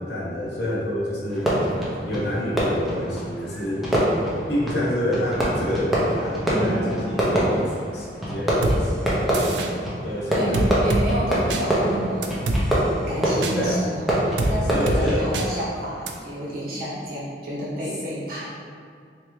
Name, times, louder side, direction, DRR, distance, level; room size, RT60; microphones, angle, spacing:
voice 1, 0.0-1.5 2.0-3.9 4.5-9.5 10.0-10.8 13.5-13.8 14.7-15.3, left 1 dB, 70° left, -5 dB, 0.9 m, -28 dB
Fireworks, 1.3-15.6, right 1 dB, ahead, 0.6 m, -25 dB
voice 2, 6.5-6.9 10.3-12.3 13.1-18.5, right 1 dB, 55° right, -7 dB, 1.2 m, -29 dB
sound 1, 8.6-8.8 9.3-9.7 10.5-11.0 11.5-11.6 12.2-12.6 13.4-13.6 14.4-14.5 14.9-15.0 15.3-15.5 16.1-16.2, right 2 dB, 85° right, 0.4 m, -24 dB
3.4 x 3.2 x 3.1 m, 2.2 s
head